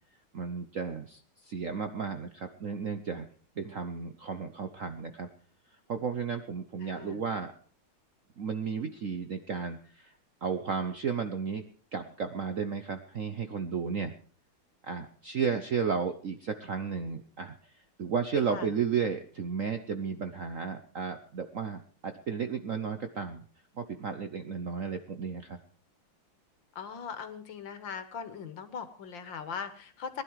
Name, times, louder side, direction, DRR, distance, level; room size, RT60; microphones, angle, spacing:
voice 1, 0.3-3.3 3.6-5.3 5.9-7.5 8.4-10.1 10.4-11.6 11.9-14.1 14.8-17.6 18.0-23.4 23.8-25.6, right 6 dB, 55° right, 8 dB, 0.9 m, -33 dB
voice 2, 6.8-7.2 18.4-18.7 26.8-30.2, left 6 dB, 65° left, 10 dB, 2.0 m, -40 dB
20.0 x 11.0 x 4.7 m, 0.43 s
omnidirectional pair, 2.3 m